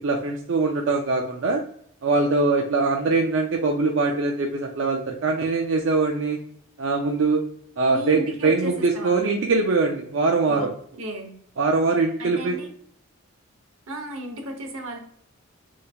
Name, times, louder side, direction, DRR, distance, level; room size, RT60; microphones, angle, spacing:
voice 1, 0.0-1.6 2.0-6.4 6.8-7.4 7.8-10.7 11.6-12.6, right 3 dB, 60° right, 2 dB, 0.4 m, -22 dB
voice 2, 7.9-9.3 10.5-11.3 12.2-12.7 13.9-15.0, equal, 85° right, 4 dB, 0.8 m, -34 dB
3.2 x 3.2 x 2.3 m, 0.64 s
head